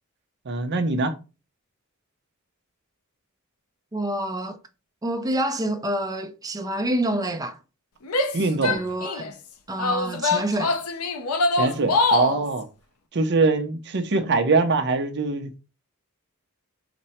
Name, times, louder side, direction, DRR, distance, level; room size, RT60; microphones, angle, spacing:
voice 1, 0.5-1.1 8.3-8.8 11.5-12.7 13.1-15.6, right 3 dB, 55° right, 0.7 m, -23 dB
voice 2, 3.9-4.6 5.0-7.6 8.4-9.3 9.7-10.8, right 1 dB, 15° right, 0.5 m, -27 dB
Female speech woman speaking / Yell, 8.0-9.3 9.8-12.4, left 3 dB, 85° left, 0.6 m, -24 dB
5.1 x 2.1 x 4.2 m
head